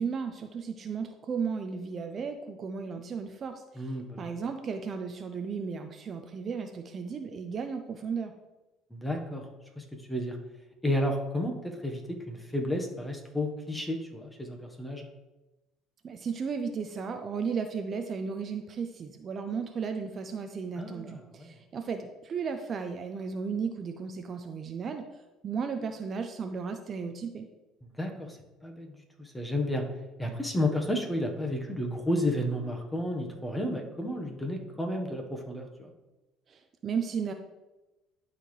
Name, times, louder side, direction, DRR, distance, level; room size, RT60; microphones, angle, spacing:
voice 1, 0.0-3.9 4.2-8.3 16.0-25.1 25.4-27.5 36.5-37.3, right 5 dB, 40° right, 7 dB, 0.6 m, -34 dB
voice 2, 3.7-4.3 8.9-9.4 9.8-10.4 10.8-15.1 20.8-21.6 27.8-28.4 28.6-29.8 30.2-35.9, left 1 dB, 10° left, 2 dB, 1.2 m, -32 dB
11.5 x 4.2 x 3.2 m, 1.0 s
cardioid pair, 105°, 0 cm